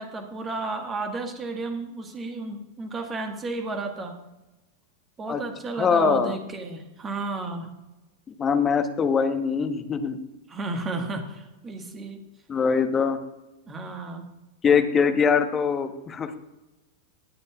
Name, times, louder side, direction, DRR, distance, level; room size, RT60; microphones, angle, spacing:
voice 1, 0.0-4.2 5.2-7.7 10.5-12.2 13.7-14.3, right 3 dB, 20° right, 4 dB, 1.6 m, -33 dB
voice 2, 5.8-6.4 8.3-10.2 12.5-13.2 14.6-16.4, left 6 dB, 20° left, 7 dB, 1.1 m, -22 dB
19.0 x 8.2 x 2.4 m, 1.0 s
figure-of-eight pair, 90°, 0 cm